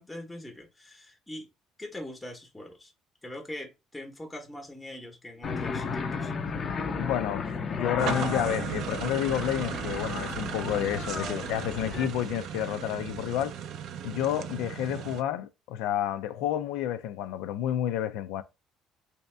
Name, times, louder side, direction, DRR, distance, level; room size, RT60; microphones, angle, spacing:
voice 1, 0.0-1.5 1.8-2.9 3.2-6.3, left 1 dB, 10° left, 0.8 m, -42 dB
sound 1, 5.4-12.1, left 5 dB, 40° left, 0.5 m, -34 dB
voice 2, 7.0-13.5 14.0-18.4, left 11 dB, 90° left, 0.4 m, -30 dB
sound 2, 8.0-15.2, right 9 dB, 60° right, 0.4 m, -36 dB
3.4 x 2.8 x 3.2 m
cardioid pair, 130°, 0 cm